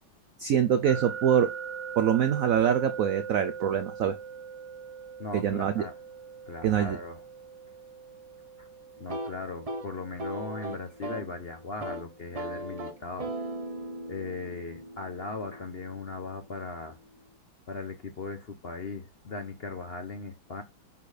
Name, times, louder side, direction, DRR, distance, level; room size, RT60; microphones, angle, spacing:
voice 1, 0.4-1.5 2.0-4.2 5.3-5.8 6.6-7.0, right 9 dB, 75° right, 0.7 m, -24 dB
sound 1, 0.8-13.7, right 6 dB, 65° left, 3.1 m, -42 dB
voice 2, 5.2-5.9 6.4-7.2 8.6-8.7 9.0-13.3 14.1-17.0 17.7-20.6, left 3 dB, 50° left, 0.7 m, -38 dB
sound 2, 9.0-11.3 11.6-12.0 12.3-16.2, right 1 dB, 40° right, 0.5 m, -38 dB
7.3 x 4.2 x 4.9 m
omnidirectional pair, 2.1 m